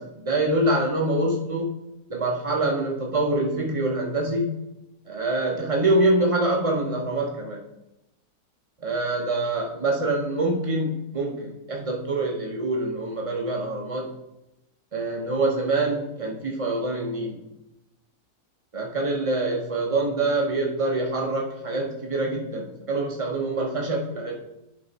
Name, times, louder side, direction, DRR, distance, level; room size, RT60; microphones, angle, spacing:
voice 1, 0.0-1.8 2.1-4.7 5.1-7.7 8.8-14.1 14.9-17.4 18.7-24.3, right 2 dB, 45° right, 0 dB, 0.4 m, -25 dB
11.0 x 3.7 x 4.0 m, 0.92 s
omnidirectional pair, 1.7 m